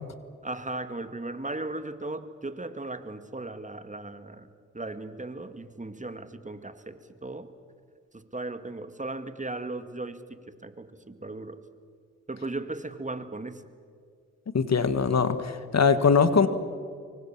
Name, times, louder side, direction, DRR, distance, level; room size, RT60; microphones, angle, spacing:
voice 1, 0.4-4.5 4.7-7.5 8.1-11.6 12.3-13.6, right 2 dB, 25° right, 10 dB, 1.9 m, -37 dB
voice 2, 14.5-16.5, left 5 dB, 55° left, 11 dB, 1.7 m, -22 dB
24.5 x 24.0 x 7.4 m, 2.2 s
cardioid pair, 60°, 32 cm